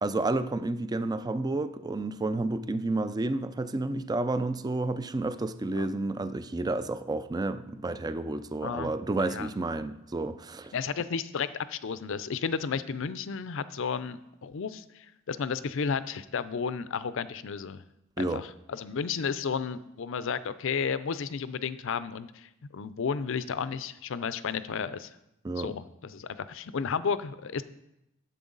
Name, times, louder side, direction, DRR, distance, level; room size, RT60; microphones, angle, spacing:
voice 1, 0.0-10.7 18.2-18.4 25.4-25.7, right 2 dB, 20° right, 12 dB, 0.4 m, -30 dB
voice 2, 8.6-8.9 9.2-9.5 10.7-17.8 18.2-25.1 25.6-27.6, left 6 dB, 65° left, 14 dB, 0.5 m, -33 dB
11.0 x 7.9 x 3.9 m, 0.84 s
head